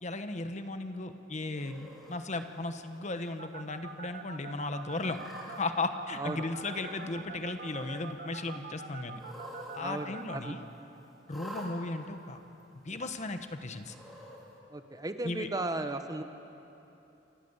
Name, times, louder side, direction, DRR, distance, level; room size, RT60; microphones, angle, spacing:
voice 1, 0.0-5.2 5.6-9.2 9.7-10.6 11.3-12.4 12.8-13.9 15.2-15.5, left 2 dB, 40° left, 8 dB, 1.1 m, -36 dB
Cat, 1.5-2.1 2.8-3.3 3.7-3.8 4.9-5.6 6.6-7.2 7.5-8.1 9.1-9.8 10.1-10.2 11.3-11.7 12.6-12.7 13.8-14.4, equal, ahead, 4.5 m, -47 dB
sound 1, 3.4-10.5, right 5 dB, 55° right, 1.3 m, -44 dB
voice 2, 9.8-10.6 14.7-16.2, right 2 dB, 20° right, 8 dB, 0.9 m, -35 dB
28.0 x 14.5 x 8.1 m, 3.0 s
head